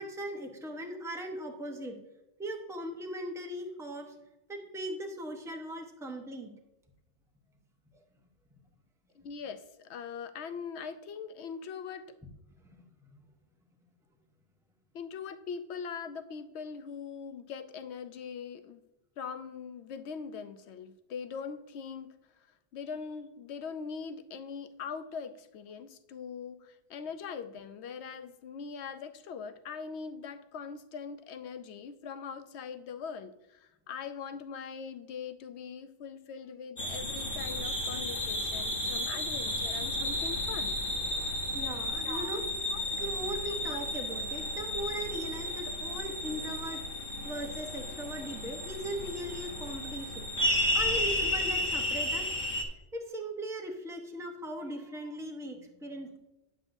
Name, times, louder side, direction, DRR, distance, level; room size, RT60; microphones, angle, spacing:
voice 1, 0.0-2.0 2.4-4.1 4.5-6.5 12.6-13.1 41.5-42.5 43.0-46.8 47.2-50.3 50.7-52.3 52.9-56.2, right 1 dB, 5° right, 2 dB, 0.8 m, -39 dB
voice 2, 9.2-12.1 14.9-18.8 19.2-22.2 22.7-40.8 42.0-42.4 42.7-42.8 43.7-43.8, left 6 dB, 70° left, 9 dB, 0.9 m, -41 dB
sound 1, 36.8-52.6, left 1 dB, 50° left, 1.3 m, -33 dB
9.7 x 7.7 x 2.6 m, 0.95 s
omnidirectional pair, 1.2 m